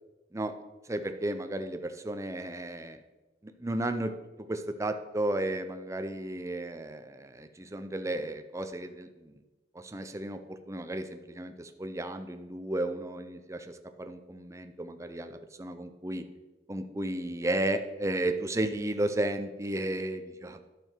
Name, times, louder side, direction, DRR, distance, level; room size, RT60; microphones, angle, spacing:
voice 1, 0.9-3.0 3.4-4.1 4.4-9.3 9.7-16.2 16.7-20.7, right 1 dB, 15° right, 7 dB, 0.6 m, -33 dB
11.0 x 6.9 x 4.5 m, 1.1 s
head